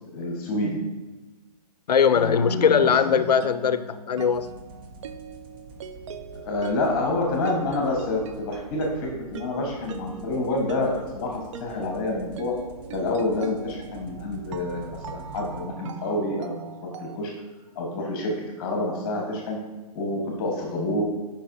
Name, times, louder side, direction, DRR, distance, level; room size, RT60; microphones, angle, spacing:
voice 1, 0.1-0.8 2.1-3.2 6.4-12.5 12.9-16.6 17.0-17.3 17.7-19.6 19.9-21.0, left 2 dB, 35° left, 0 dB, 1.2 m, -28 dB
voice 2, 1.9-4.5, left 7 dB, 80° left, 13 dB, 0.5 m, -20 dB
sound 1, 2.6-17.2, right 6 dB, 50° right, 0.4 m, -41 dB
sound 2, 4.3-15.6, right 1 dB, 35° right, 0.8 m, -46 dB
6.9 x 5.3 x 2.6 m, 1.2 s
hypercardioid pair, 135°, 20 cm